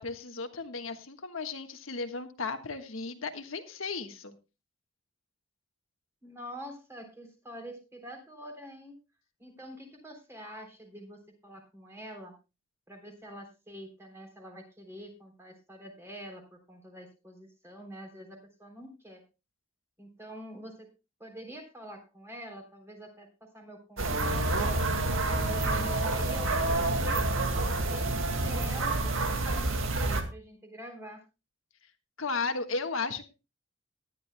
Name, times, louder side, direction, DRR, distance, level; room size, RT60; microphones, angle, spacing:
voice 1, 0.0-4.3 32.2-33.3, left 4 dB, 80° left, 6 dB, 1.5 m, -35 dB
voice 2, 6.2-9.0 9.4-12.3 12.9-19.2 20.0-20.9 21.2-24.7 25.3-31.2, equal, 15° right, 3 dB, 3.4 m, -46 dB
sound 1, 24.0-30.2, right 2 dB, 80° right, 2.0 m, -28 dB
19.5 x 11.0 x 2.2 m, 0.28 s
head